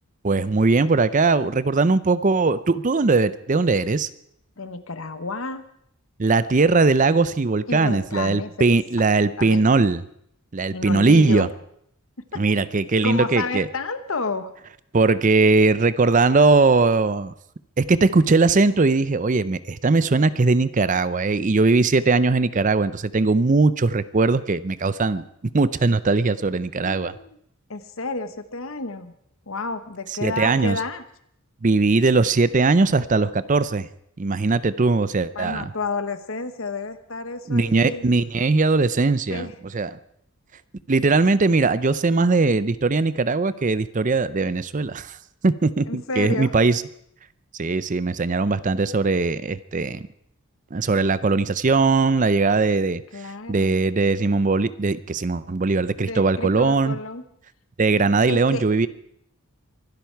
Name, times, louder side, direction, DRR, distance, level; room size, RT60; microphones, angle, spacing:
voice 1, 0.2-4.1 6.2-10.0 10.5-11.5 12.4-13.7 14.9-17.3 17.8-25.2 25.5-27.1 30.2-30.8 31.6-33.9 34.2-35.7 37.5-39.5 39.7-39.9 40.9-45.2 45.4-46.8 47.6-50.0 50.7-53.0 53.5-57.0 57.8-58.9, right 3 dB, 35° right, 15 dB, 0.5 m, -20 dB
voice 2, 4.6-5.6 7.7-8.6 9.4-9.7 10.7-11.5 12.3-12.4 13.0-14.5 26.8-27.4 27.7-29.1 29.5-31.0 35.3-38.0 39.3-39.5 45.9-46.5 53.1-53.8 56.0-57.2 58.3-58.9, left 3 dB, 60° left, 11 dB, 1.2 m, -31 dB
24.0 x 12.0 x 4.6 m, 0.71 s
head